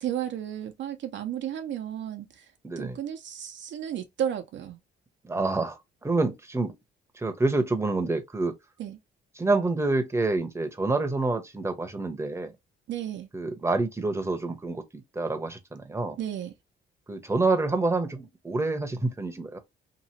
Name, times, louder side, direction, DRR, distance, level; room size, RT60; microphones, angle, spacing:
voice 1, 0.0-2.5 2.8-4.8 8.8-9.0 12.9-13.3 16.2-16.5, right 10 dB, 65° right, 0.7 m, -33 dB
voice 2, 2.6-3.0 5.2-6.7 7.2-8.5 9.4-12.5 13.3-16.2 17.1-19.6, right 3 dB, 15° right, 0.9 m, -27 dB
2.9 x 2.7 x 2.7 m
cardioid pair, 90°, 20 cm